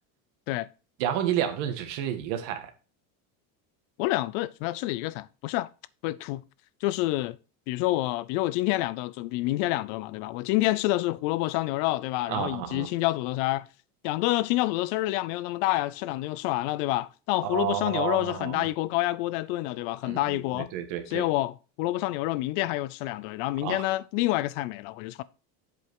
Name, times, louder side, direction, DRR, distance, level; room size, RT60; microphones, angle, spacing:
voice 1, 1.0-2.7 12.3-12.9 17.4-18.7 20.0-21.2 23.6-23.8, right 10 dB, 70° right, 1.6 m, -30 dB
voice 2, 4.0-5.7 6.0-6.4 6.8-7.4 7.7-13.7 14.0-20.7 21.1-25.2, left 17 dB, 70° left, 0.6 m, -28 dB
7.8 x 5.3 x 4.6 m
cardioid pair, 175°, 39 cm